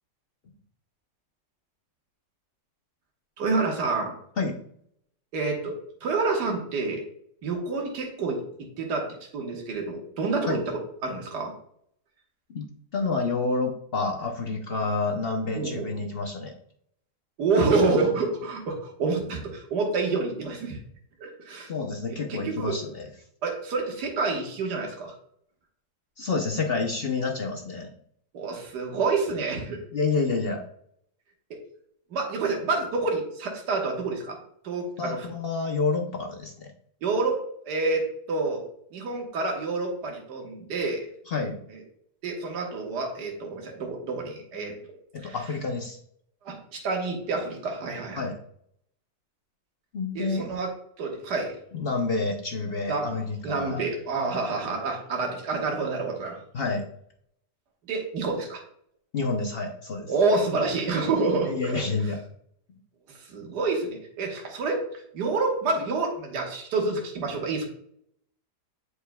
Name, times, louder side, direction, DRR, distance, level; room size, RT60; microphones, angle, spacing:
voice 1, 3.4-4.2 5.3-5.8 6.0-7.0 7.4-9.1 9.3-11.5 15.5-15.9 17.4-20.8 21.2-21.7 22.3-22.8 23.4-25.1 28.3-29.8 32.1-34.4 34.6-35.3 37.0-38.7 38.9-41.0 42.2-44.7 45.2-45.4 46.5-48.2 50.2-50.7 51.0-51.5 52.9-53.1 53.4-56.4 57.9-58.6 60.1-61.8 63.1-64.8 65.1-67.7, right 3 dB, 65° right, 0 dB, 1.9 m, -28 dB
voice 2, 12.9-16.5 21.7-23.1 26.2-27.9 29.9-30.6 35.0-36.7 41.3-41.6 45.1-46.0 48.2-48.4 49.9-50.6 51.7-53.8 56.5-56.8 59.1-60.1 61.4-62.2, left 4 dB, 55° left, 2 dB, 0.6 m, -28 dB
9.8 x 4.7 x 2.3 m, 0.67 s
omnidirectional pair, 1.9 m